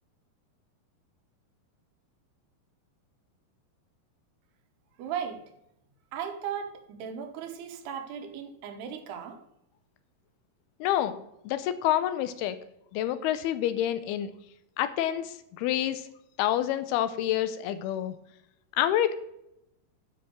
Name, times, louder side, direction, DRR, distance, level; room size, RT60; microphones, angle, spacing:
voice 1, 5.0-5.4 6.1-9.4, right 8 dB, 85° right, 3.3 m, -36 dB
voice 2, 10.8-11.1 11.5-12.6 12.9-14.3 14.8-16.1 16.4-18.2 18.8-19.2, left 12 dB, 90° left, 2.7 m, -27 dB
9.7 x 5.7 x 6.2 m
omnidirectional pair, 4.5 m